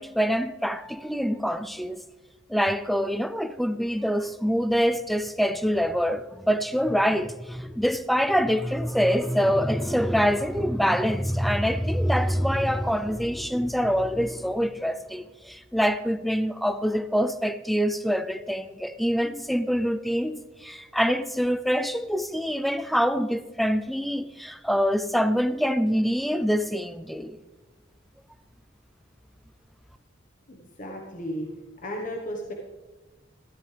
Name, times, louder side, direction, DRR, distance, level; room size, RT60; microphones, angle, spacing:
voice 1, 0.0-2.0 2.5-27.4, equal, ahead, 0.4 m, -25 dB
voice 2, 30.5-31.5 31.8-32.5, equal, 40° left, 1.3 m, -34 dB
14.0 x 12.5 x 3.4 m
head